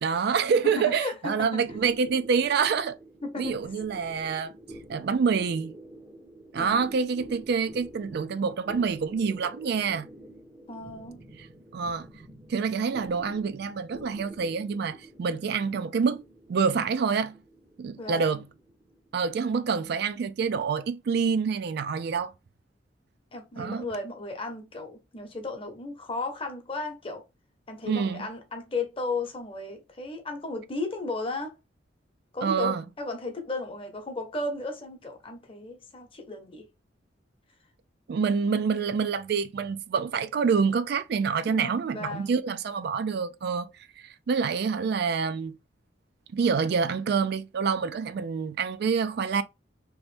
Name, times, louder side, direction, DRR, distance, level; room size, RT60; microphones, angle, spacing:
voice 1, 0.0-3.0 3.4-4.5 4.9-5.7 6.5-10.1 11.4-11.5 11.7-12.1 12.5-16.2 16.5-17.4 17.8-18.4 19.1-22.3 23.6-23.8 27.9-28.3 32.4-32.8 38.1-43.7 44.0-45.6 46.3-49.4, right 5 dB, 60° right, 0.4 m, -27 dB
voice 2, 0.6-1.6 3.2-3.6 6.6-6.9 10.7-11.2 18.0-18.4 23.3-27.2 27.7-31.5 32.3-36.7 41.5-42.3, left 2 dB, 30° left, 0.9 m, -35 dB
sound 1, 1.7-20.4, right 1 dB, 15° right, 0.6 m, -48 dB
3.0 x 2.6 x 3.2 m
head